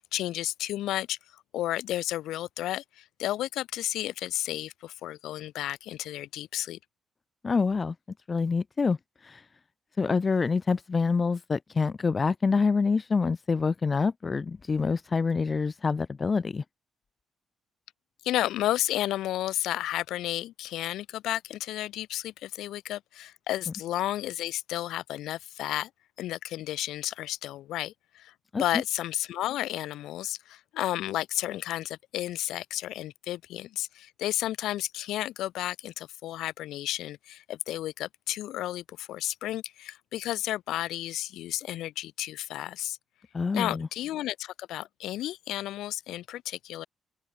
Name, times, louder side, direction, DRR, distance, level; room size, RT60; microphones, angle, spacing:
voice 1, 0.1-6.8 18.2-25.9 26.2-28.3 28.6-43.0 43.5-46.9, left 14 dB, 85° left, 5.2 m, -32 dB
voice 2, 7.4-7.9 8.3-9.0 9.2-9.4 10.0-16.6 28.5-28.6 43.3-43.9, left 4 dB, 35° left, 1.0 m, -26 dB
open air
cardioid pair, 90°, 0 cm